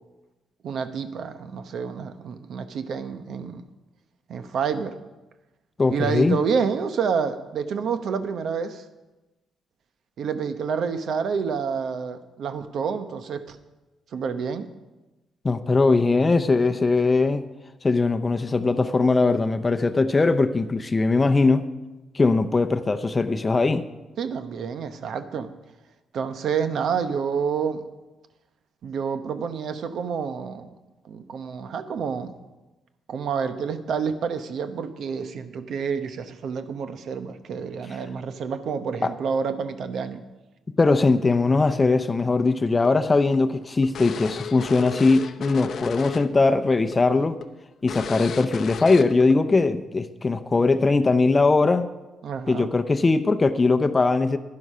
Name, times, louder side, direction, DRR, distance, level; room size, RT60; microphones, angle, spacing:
voice 1, 0.6-3.6 4.3-4.9 5.9-8.8 10.2-13.6 14.1-14.7 24.2-25.5 26.1-27.8 28.8-30.8 31.0-32.4 33.1-40.2 52.2-52.7, right 6 dB, 65° right, 10 dB, 0.9 m, -28 dB
voice 2, 5.8-6.4 15.4-17.5 17.8-21.7 22.1-23.9 39.0-39.1 40.8-47.4 47.8-51.9 52.5-54.4, left 3 dB, 25° left, 10 dB, 0.7 m, -20 dB
sound 1, 42.8-46.5 46.7-47.0 47.4-47.5 47.9-49.3, left 7 dB, 60° left, 0.7 m, -34 dB
11.0 x 10.5 x 5.5 m, 1.1 s
cardioid pair, 90°, 0 cm